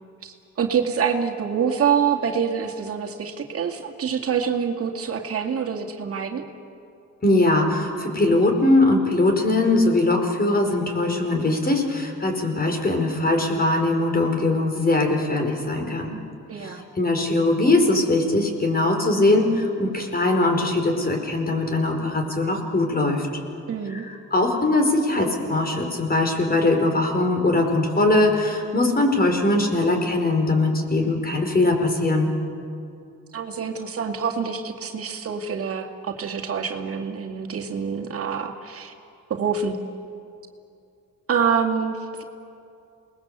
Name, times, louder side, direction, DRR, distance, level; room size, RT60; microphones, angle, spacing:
voice 1, 0.2-6.5 16.5-16.8 23.7-24.1 33.3-38.9 39.3-39.8 41.3-42.2, right 7 dB, 50° right, 3 dB, 2.3 m, -26 dB
voice 2, 7.2-16.2 16.6-23.3 23.9-32.3, left 2 dB, 30° left, 3 dB, 4.7 m, -21 dB
28.0 x 20.5 x 8.2 m, 2.5 s
cardioid pair, 90°, 30 cm